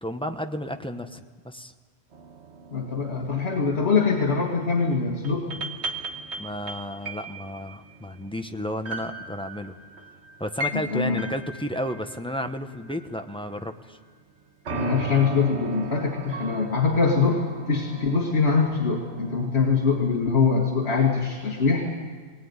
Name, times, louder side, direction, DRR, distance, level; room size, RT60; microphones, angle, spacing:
voice 1, 0.0-1.7 6.4-9.8 10.4-14.0, equal, 5° left, 6 dB, 0.9 m, -32 dB
sound 1, 2.1-13.7 14.6-19.5, right 2 dB, 80° right, 1.6 m, -38 dB
voice 2, 2.7-5.4 10.7-11.2 14.7-17.4 17.7-21.9, left 5 dB, 70° left, 0 dB, 2.3 m, -23 dB
20.5 x 18.5 x 9.6 m, 1.5 s
omnidirectional pair, 1.1 m